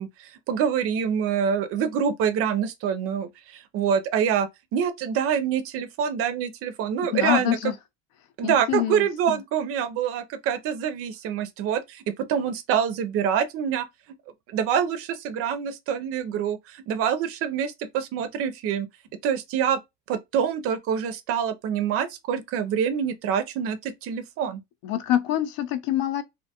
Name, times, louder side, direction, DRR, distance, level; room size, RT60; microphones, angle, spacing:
voice 1, 0.0-7.6 8.4-13.9 14.5-18.9 19.2-19.8 20.1-24.6, right 8 dB, 45° right, 0.4 m, -26 dB
voice 2, 7.1-7.7 8.4-9.4 24.8-26.2, left 12 dB, 85° left, 0.6 m, -25 dB
2.6 x 2.2 x 2.7 m
cardioid pair, 155°, 33 cm